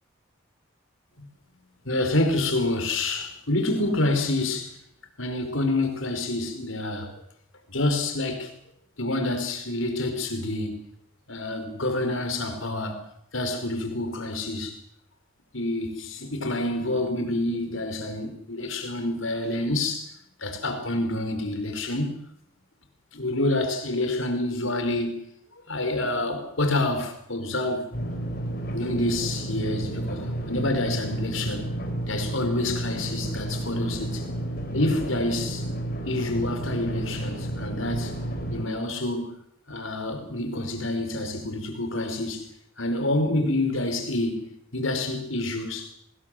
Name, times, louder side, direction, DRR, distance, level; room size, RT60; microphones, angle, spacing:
voice 1, 1.8-4.8 5.2-7.2 7.7-8.5 9.0-10.8 11.3-13.0 13.3-14.8 15.5-20.1 20.4-22.2 23.1-25.2 25.7-27.9 28.7-31.7 32.1-34.2 34.7-35.7 36.1-38.1 38.5-39.3 39.7-42.5 42.8-45.9, left 2 dB, 75° left, 4.9 m, -27 dB
sound 1, 27.9-38.7, right 1 dB, 45° left, 5.0 m, -31 dB
24.5 x 20.0 x 7.8 m
head